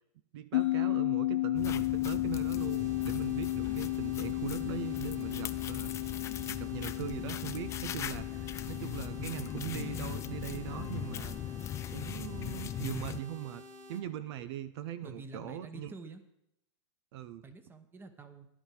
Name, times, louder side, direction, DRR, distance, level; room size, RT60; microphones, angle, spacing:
voice 1, 0.3-6.1 6.4-11.4 11.9-13.6 13.9-15.9 17.1-17.4, right 11 dB, 60° right, 15 dB, 0.7 m, -41 dB
sound 1, 0.5-13.3, left 17 dB, 75° left, 0.4 m, -35 dB
sound 2, 1.5-13.2, left 10 dB, 20° left, 0.4 m, -40 dB
sound 3, 2.6-14.0, right 1 dB, 80° right, 2.4 m, -52 dB
voice 2, 15.0-16.2 17.4-18.5, right 2 dB, 15° right, 9 dB, 1.1 m, -48 dB
13.5 x 10.5 x 4.9 m, 0.81 s
supercardioid pair, 140°, 15 cm